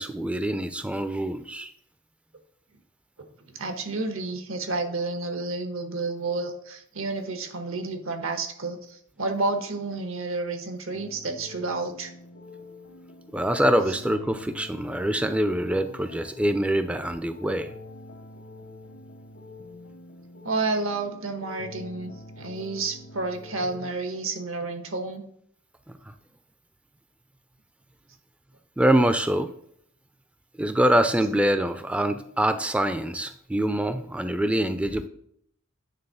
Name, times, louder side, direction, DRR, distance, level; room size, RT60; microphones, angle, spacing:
voice 1, 0.0-1.7 13.3-17.7 26.1-26.2 28.8-29.5 30.6-35.1, right 1 dB, 5° right, 10 dB, 0.3 m, -24 dB
voice 2, 3.5-12.1 20.4-25.3, right 3 dB, 80° right, 8 dB, 1.1 m, -30 dB
sound 1, 10.9-23.9, left 2 dB, 75° left, 1.0 m, -45 dB
9.0 x 3.6 x 5.5 m, 0.67 s
head